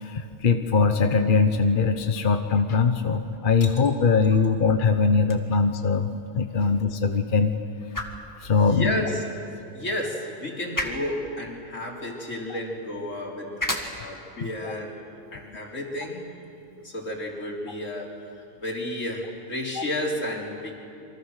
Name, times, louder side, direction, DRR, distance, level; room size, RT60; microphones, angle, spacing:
voice 1, 0.0-6.1 6.3-7.5 8.4-9.0 12.5-12.6 14.6-14.7 19.8-19.9, left 5 dB, 45° left, 6 dB, 1.1 m, -22 dB
sound 1, 5.1-17.2, left 1 dB, 15° left, 2.0 m, -39 dB
voice 2, 8.7-9.2 9.7-13.5 14.0-14.9 15.3-16.4 16.8-18.2 18.6-20.7, left 1 dB, 70° left, -1 dB, 4.0 m, -32 dB
28.5 x 25.0 x 6.5 m, 2.8 s
omnidirectional pair, 1.4 m